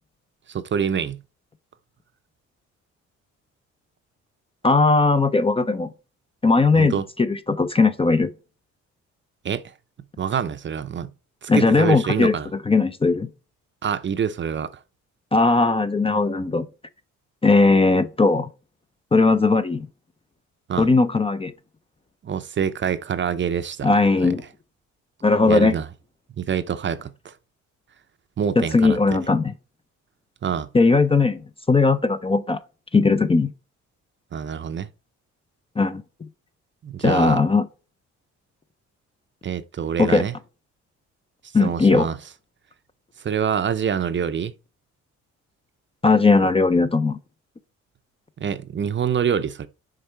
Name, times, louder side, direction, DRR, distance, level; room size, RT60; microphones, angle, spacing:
voice 1, 0.5-1.2 6.7-7.0 9.4-9.6 10.2-11.1 11.4-12.5 13.8-14.7 20.7-20.9 22.2-23.9 24.2-24.3 25.5-25.9 26.4-27.3 28.4-29.0 30.4-30.7 34.3-34.9 36.8-37.4 39.4-40.3 41.6-42.2 43.2-44.5 48.4-49.7, right 7 dB, 40° right, 0.6 m, -26 dB
voice 2, 4.6-5.9 6.4-8.3 11.5-12.3 12.7-13.3 15.3-16.7 17.4-18.5 19.1-19.9 20.8-21.5 23.8-24.4 25.2-25.7 28.6-29.5 30.7-31.4 31.7-32.6 32.9-33.5 35.8-36.0 37.0-37.7 40.0-40.2 41.5-42.1 46.0-47.2, left 3 dB, 20° left, 0.5 m, -18 dB
6.6 x 3.5 x 4.5 m
cardioid pair, 90°, 30 cm